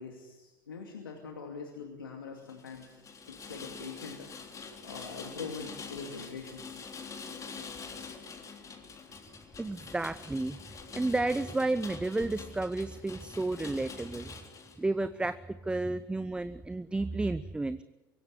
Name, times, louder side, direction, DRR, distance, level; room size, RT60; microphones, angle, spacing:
voice 1, 0.0-3.0 3.3-4.3 4.8-6.7 14.7-14.8, left 5 dB, 85° left, 2 dB, 2.4 m, -43 dB
Rain, 2.4-14.8, left 5 dB, 30° left, 3.5 m, -45 dB
voice 2, 9.6-10.6 10.9-14.3 14.8-15.4 15.6-17.8, right 2 dB, 10° right, 14 dB, 0.7 m, -31 dB
24.5 x 17.0 x 8.3 m, 1.1 s
hypercardioid pair, 80°, 11 cm